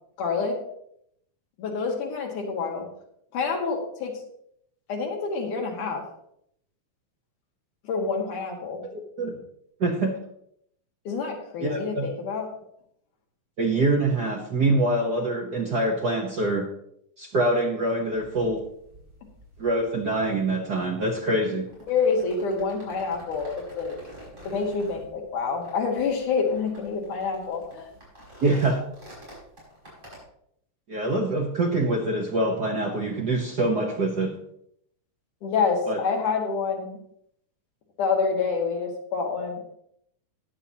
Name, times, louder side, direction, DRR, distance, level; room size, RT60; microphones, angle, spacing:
voice 1, 0.2-0.6 1.6-2.9 3.3-4.1 4.9-6.1 7.8-8.8 11.1-12.5 21.9-24.0 24.5-27.9 35.4-37.0 38.0-39.7, left 5 dB, 75° left, 0 dB, 3.4 m, -27 dB
voice 2, 8.8-9.4 9.8-10.1 11.6-12.1 13.6-16.7 17.2-18.6 19.6-21.6 28.4-28.8 30.9-34.3 35.9-36.0, right 2 dB, 75° right, -1 dB, 0.9 m, -25 dB
sound 1, 18.0-30.2, right 1 dB, 15° right, 5.3 m, -48 dB
14.5 x 9.8 x 2.9 m, 0.71 s
omnidirectional pair, 3.6 m